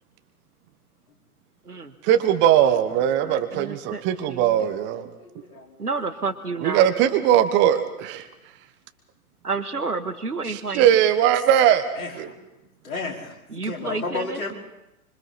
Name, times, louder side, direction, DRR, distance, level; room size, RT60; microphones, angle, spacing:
voice 1, 2.0-5.1 6.6-8.2 10.5-11.9 12.2-12.3, right 10 dB, 25° right, 9 dB, 1.3 m, -20 dB
voice 2, 2.9-4.0 4.3-4.7 5.8-6.9 9.4-11.0 13.5-14.4, right 4 dB, 90° right, 9 dB, 1.8 m, -30 dB
voice 3, 5.2-5.8 11.9-12.3 12.8-14.5, left 3 dB, 65° left, -1 dB, 5.0 m, -33 dB
25.5 x 25.0 x 4.3 m, 0.91 s
figure-of-eight pair, 115°, 45 cm